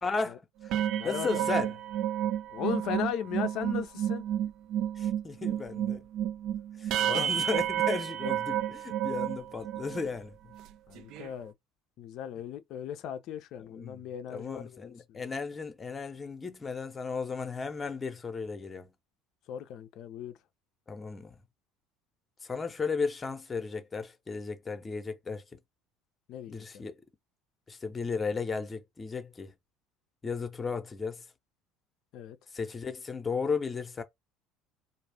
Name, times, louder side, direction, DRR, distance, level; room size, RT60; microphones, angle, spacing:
voice 1, 0.0-0.8 1.0-1.7 5.0-6.0 6.8-10.4 13.7-14.0 14.3-18.9 20.9-21.4 22.4-25.6 26.5-26.9 27.7-29.5 30.2-31.2 32.5-34.0, left 4 dB, 25° left, 0.7 m, -35 dB
sound 1, 0.6-10.1 10.5-10.7 11.0-11.3, right 11 dB, 60° right, 0.3 m, -31 dB
voice 2, 0.8-1.5 2.5-4.2 7.0-7.4 10.9-11.5 12.0-15.2 19.5-20.4 26.3-26.9 32.1-32.4, left 9 dB, 55° left, 0.4 m, -37 dB
2.4 x 2.1 x 3.4 m
hypercardioid pair, 65°, 0 cm